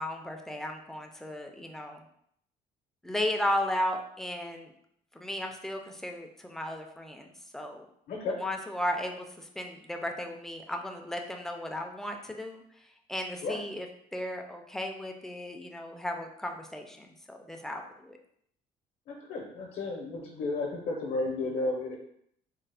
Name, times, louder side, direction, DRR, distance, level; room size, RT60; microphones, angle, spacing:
voice 1, 0.0-2.0 3.0-4.7 5.1-7.9 8.3-12.6 13.1-13.9 14.1-18.2, left 1 dB, ahead, 3 dB, 0.4 m, -35 dB
voice 2, 8.1-8.4 13.4-13.6 19.1-22.0, left 2 dB, 65° left, 0 dB, 0.7 m, -33 dB
3.4 x 2.0 x 3.3 m, 0.70 s
cardioid pair, 110°, 17 cm